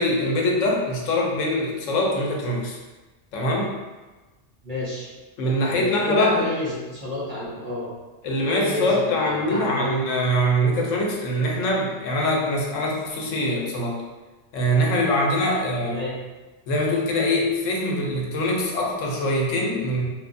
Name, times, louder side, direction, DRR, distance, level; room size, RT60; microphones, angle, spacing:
voice 1, 0.0-2.8 3.3-3.7 5.4-6.5 8.2-14.0 14.5-16.0 16.7-20.0, left 1 dB, 90° left, -1 dB, 1.0 m, -23 dB
voice 2, 4.6-5.1 5.7-7.9 8.5-9.9 15.8-16.1, left 1 dB, 50° right, -7 dB, 0.6 m, -30 dB
3.2 x 2.0 x 2.4 m, 1.2 s
omnidirectional pair, 1.3 m